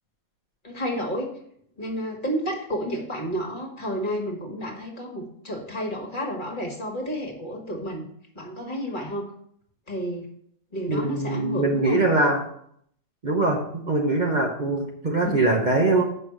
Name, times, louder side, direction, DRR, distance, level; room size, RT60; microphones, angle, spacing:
voice 1, 0.6-1.3 1.8-8.0 8.3-9.3 9.9-10.3 10.7-12.0 15.2-15.4, equal, 35° left, 1 dB, 1.8 m, -31 dB
voice 2, 10.9-12.4 13.2-16.0, right 2 dB, 35° right, -1 dB, 1.1 m, -22 dB
7.2 x 5.6 x 6.0 m, 0.67 s
omnidirectional pair, 1.4 m